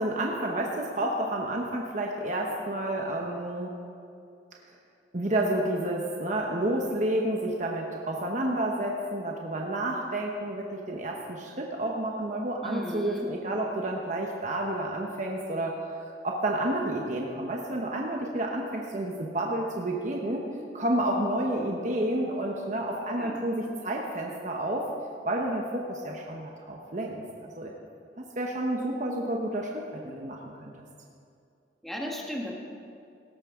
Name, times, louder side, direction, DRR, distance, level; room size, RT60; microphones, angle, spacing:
voice 1, 0.0-3.8 5.1-20.4 20.7-24.8 25.2-27.7 28.2-30.8, right 1 dB, 40° right, 0 dB, 1.0 m, -30 dB
voice 2, 12.6-13.3 23.2-23.4 31.8-32.5, left 1 dB, ahead, -2 dB, 1.5 m, -35 dB
17.5 x 13.0 x 3.7 m, 2.5 s
head